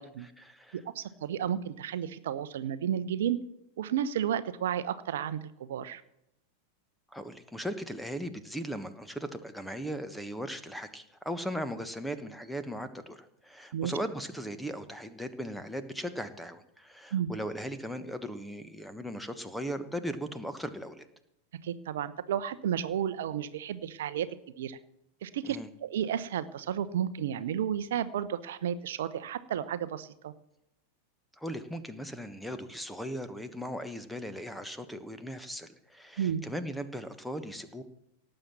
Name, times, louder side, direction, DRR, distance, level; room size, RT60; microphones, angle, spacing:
voice 1, 0.2-0.8 7.1-21.1 25.4-25.7 31.4-37.8, equal, ahead, 10 dB, 1.3 m, -38 dB
voice 2, 0.7-3.4 3.8-6.0 13.7-13.9 17.1-17.3 21.6-24.3 24.6-24.8 25.2-30.3 36.2-36.4, right 9 dB, 60° right, 14 dB, 0.8 m, -32 dB
18.0 x 7.8 x 7.1 m, 0.83 s
figure-of-eight pair, 90°, 0 cm